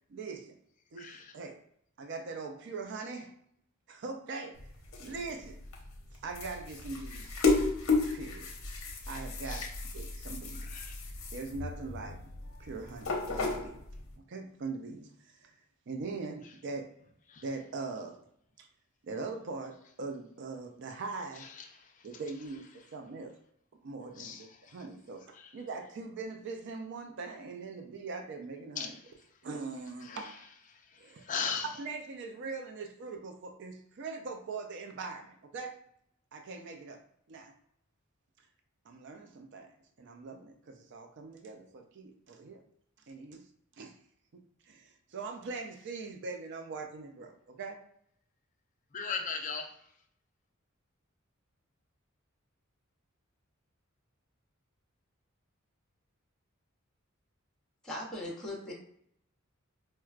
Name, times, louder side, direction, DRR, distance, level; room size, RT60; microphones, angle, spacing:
voice 1, 0.1-0.6 0.9-1.6 2.0-3.3 3.9-4.6 5.0-5.6 6.2-7.4 8.1-8.5 9.1-9.7 9.9-10.8 11.3-12.3 12.6-13.8 14.3-15.5 15.9-17.0 17.4-18.2 18.6-18.7 19.0-21.5 22.0-23.4 23.8-29.0 29.4-30.3 31.0-31.3 31.6-35.8 36.3-37.0 37.3-37.5 38.9-42.6 43.1-43.5 43.8-44.0 44.6-47.8, right 4 dB, 60° right, 0.4 m, -41 dB
voice 2, 1.0-1.3 9.5-9.7 10.7-11.0 17.3-17.4 21.6-21.9 24.2-24.8 25.4-25.5 28.8-28.9 30.1-30.3 30.7-31.7 48.9-49.7, left 6 dB, 40° left, 0.4 m, -38 dB
sound 1, 4.5-14.1, left 3 dB, 70° left, 0.7 m, -34 dB
voice 3, 57.8-58.7, left 1 dB, 5° left, 0.7 m, -39 dB
4.4 x 2.1 x 2.4 m
head